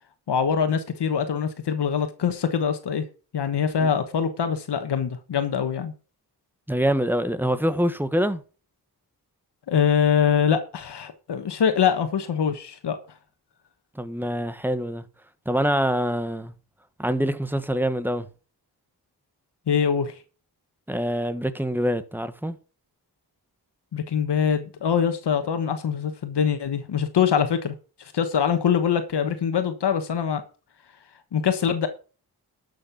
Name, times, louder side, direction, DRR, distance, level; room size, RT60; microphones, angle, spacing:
voice 1, 0.3-3.0 3.3-5.9 9.7-13.0 19.7-20.2 23.9-30.4 31.3-31.9, left 7 dB, 90° left, 1.3 m, -23 dB
voice 2, 6.7-8.4 13.9-15.0 15.4-16.5 17.0-18.3 20.9-22.6, equal, 5° right, 1.3 m, -25 dB
12.0 x 6.7 x 5.8 m
wide cardioid pair, 95°, 40 cm